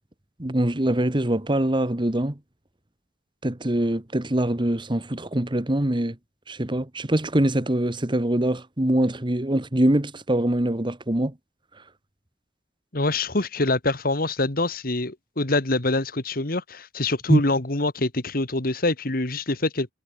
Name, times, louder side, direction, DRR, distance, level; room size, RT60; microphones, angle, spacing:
voice 1, 0.4-2.4 3.4-6.2 6.5-11.3 17.3-17.4, right 1 dB, 30° right, 1.5 m, -23 dB
voice 2, 12.9-19.9, left 2 dB, 60° left, 2.2 m, -25 dB
head